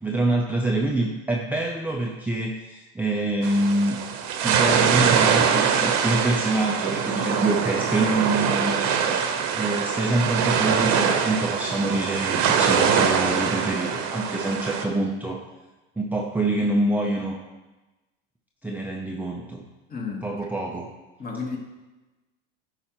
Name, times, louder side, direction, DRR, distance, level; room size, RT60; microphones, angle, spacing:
voice 1, 0.0-4.0 4.4-9.0 9.5-15.4 16.0-17.4 18.6-19.6 20.2-20.9, right 2 dB, 5° right, -1 dB, 0.6 m, -26 dB
sound 1, 3.4-14.9, right 7 dB, 60° right, 1.0 m, -23 dB
voice 2, 19.9-20.3 21.2-21.6, left 4 dB, 30° left, 1 dB, 1.5 m, -32 dB
11.0 x 4.9 x 3.0 m, 1.1 s
supercardioid pair, 105°, 31 cm